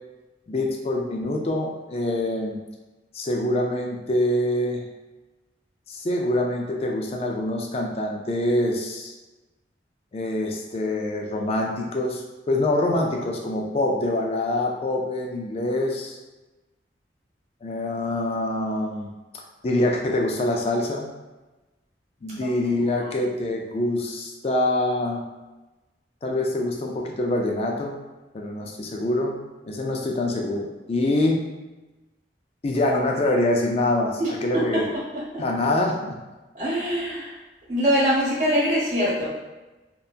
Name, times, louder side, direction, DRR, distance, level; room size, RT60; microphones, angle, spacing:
voice 1, 0.5-2.6 3.1-4.8 5.9-9.1 10.1-12.2 12.5-16.2 17.6-19.1 19.6-21.1 22.2-25.2 26.2-27.9 28.3-29.4 29.6-31.4 32.6-34.9 35.4-36.2, left 1 dB, 35° left, 1 dB, 0.3 m, -25 dB
voice 2, 34.2-34.8 35.3-35.4 36.5-37.4 37.7-39.3, equal, 40° right, -8 dB, 1.0 m, -23 dB
2.7 x 2.2 x 2.4 m, 1.1 s
head